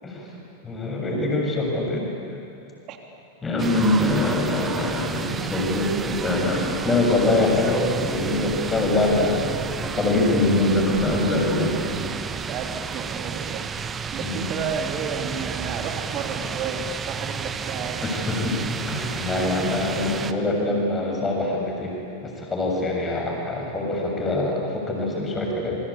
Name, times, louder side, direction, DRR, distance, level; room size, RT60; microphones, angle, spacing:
voice 1, 0.6-2.1 3.4-9.5 9.8-11.7 14.2-14.4 18.0-18.6 18.9-22.0 22.2-25.8, left 2 dB, 15° left, 0 dB, 7.4 m, -24 dB
sound 1, 3.6-20.3, right 6 dB, 20° right, 1.2 m, -31 dB
voice 2, 12.5-13.6 14.1-18.5 19.3-19.5 19.9-20.1 20.6-21.3, right 6 dB, 40° right, 3 dB, 3.4 m, -33 dB
28.0 x 24.0 x 8.8 m, 2.7 s
figure-of-eight pair, 90°, 0 cm